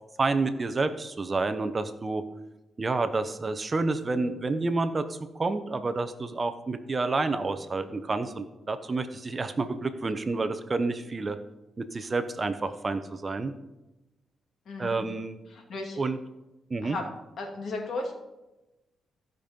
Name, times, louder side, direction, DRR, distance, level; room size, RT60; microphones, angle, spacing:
voice 1, 0.2-2.2 2.8-5.1 5.3-11.4 11.8-13.5 14.8-15.4 16.0-16.2 16.7-17.0, right 3 dB, 30° right, 10 dB, 0.7 m, -29 dB
voice 2, 14.7-15.0 15.5-16.0 16.8-17.1 17.4-18.1, left 3 dB, 60° left, 1 dB, 2.5 m, -34 dB
15.5 x 5.4 x 5.1 m, 0.99 s
cardioid pair, 120°, 0 cm